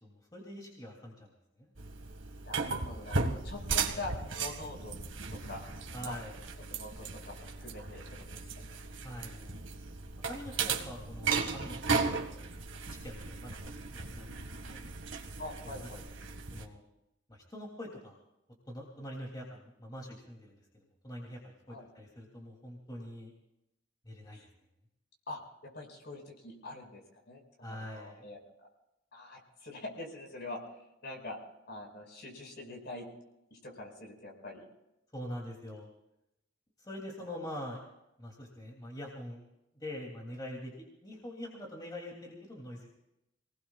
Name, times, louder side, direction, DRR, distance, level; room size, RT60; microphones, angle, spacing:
voice 1, 0.0-1.3 1.6-1.7 5.9-6.3 9.0-9.6 10.2-11.8 12.1-12.3 12.9-14.3 14.6-14.8 15.6-16.0 16.5-16.8 17.3-18.2 18.7-23.3 24.0-24.4 27.6-28.3 35.1-35.9 36.8-37.8 38.2-39.4 39.7-42.9, left 1 dB, 20° left, -2 dB, 2.9 m, -44 dB
sound 1, 1.8-16.7, right 4 dB, 75° right, 1.9 m, -36 dB
voice 2, 2.4-5.0 5.3-5.6 6.1-6.2 6.7-8.3 8.7-8.8 15.4-16.0 21.7-21.9 24.3-24.4 25.3-28.7 29.1-30.7 31.0-31.4 31.7-33.1 33.5-34.7 37.3-37.4, left 2 dB, 55° left, 1 dB, 5.4 m, -44 dB
27.5 x 19.5 x 2.4 m, 0.86 s
head